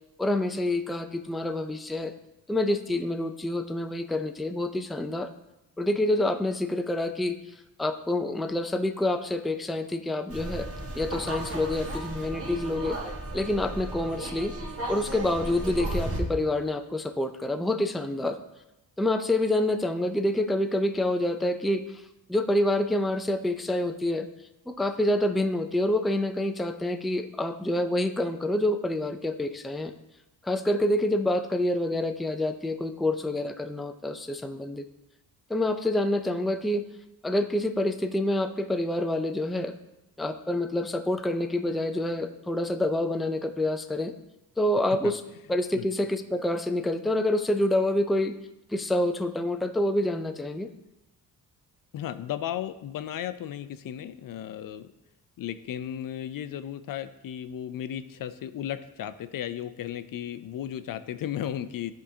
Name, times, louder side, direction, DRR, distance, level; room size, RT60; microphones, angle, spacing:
voice 1, 0.2-2.1 2.5-5.3 5.8-7.4 7.8-10.7 10.9-13.0 13.3-14.5 14.9-18.4 19.0-22.0 22.3-24.3 24.7-29.9 30.4-34.8 35.5-36.8 37.2-39.7 40.2-44.1 44.6-45.2 45.5-48.3 48.7-50.7, left 1 dB, ahead, 7 dB, 0.4 m, -27 dB
sound 1, 10.3-16.2, right 1 dB, 40° right, 1.4 m, -34 dB
voice 2, 51.9-54.9 55.4-61.9, left 10 dB, 60° left, 12 dB, 0.5 m, -35 dB
10.0 x 3.7 x 2.7 m, 0.92 s
cardioid pair, 70°, 38 cm